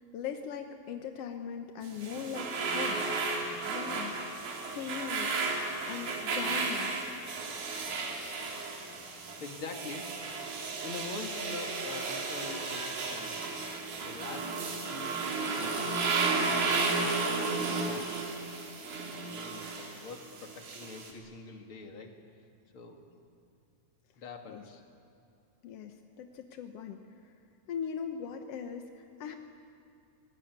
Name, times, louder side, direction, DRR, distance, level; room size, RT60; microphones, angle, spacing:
voice 1, 0.0-3.4 3.6-4.2 4.7-5.3 5.9-6.9 24.5-24.6 25.6-27.0 27.7-29.3, left 7 dB, 70° left, 5 dB, 1.5 m, -39 dB
sound 1, 1.8-21.1, right 4 dB, 80° right, 4.8 m, -33 dB
voice 2, 9.1-10.4 10.8-13.4 14.0-14.6 14.9-16.0 16.5-18.2 19.1-22.1 22.7-23.0 24.2-24.8, left 4 dB, 40° left, 3 dB, 2.6 m, -45 dB
25.0 x 20.0 x 9.6 m, 2.6 s
omnidirectional pair, 4.1 m